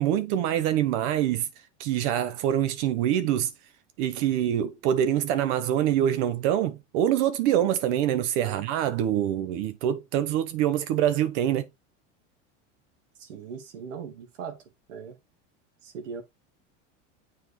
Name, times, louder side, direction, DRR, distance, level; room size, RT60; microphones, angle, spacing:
voice 1, 0.0-1.5 1.8-3.5 4.0-11.7, right 11 dB, 65° right, 0.9 m, -25 dB
voice 2, 13.2-14.6 14.9-15.2 15.8-16.2, right 6 dB, 85° right, 1.3 m, -39 dB
7.2 x 4.4 x 3.1 m
hypercardioid pair, 100°, 36 cm